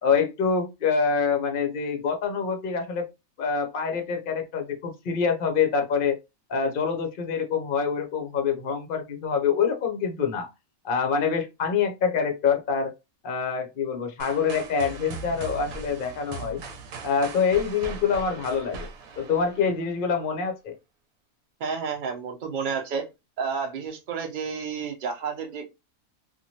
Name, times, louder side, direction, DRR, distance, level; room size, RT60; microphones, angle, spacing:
voice 1, 0.0-3.1 3.4-6.2 6.5-10.5 10.8-12.9 13.2-16.6 17.0-18.9 19.2-20.7, left 6 dB, 50° left, 0.7 m, -25 dB
sound 1, 14.2-20.1, right 3 dB, 80° right, 1.1 m, -39 dB
voice 2, 21.6-23.0 23.4-25.7, right 6 dB, 45° right, 0.7 m, -30 dB
2.9 x 2.4 x 2.8 m
omnidirectional pair, 1.5 m